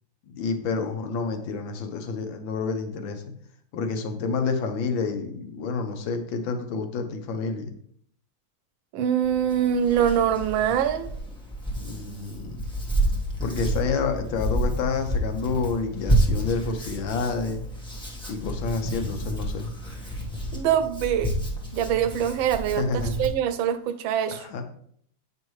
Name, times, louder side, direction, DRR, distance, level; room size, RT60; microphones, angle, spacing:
voice 1, 0.3-3.2 3.7-7.7 11.7-12.6 13.4-17.6 18.3-19.7 22.7-23.2 24.3-24.7, left 4 dB, 75° left, 1.6 m, -29 dB
voice 2, 8.9-11.1 20.5-21.4 21.7-24.4, right 9 dB, 80° right, 1.3 m, -24 dB
Hands, 9.2-23.3, right 1 dB, 5° left, 0.9 m, -29 dB
8.3 x 5.4 x 3.1 m
omnidirectional pair, 2.2 m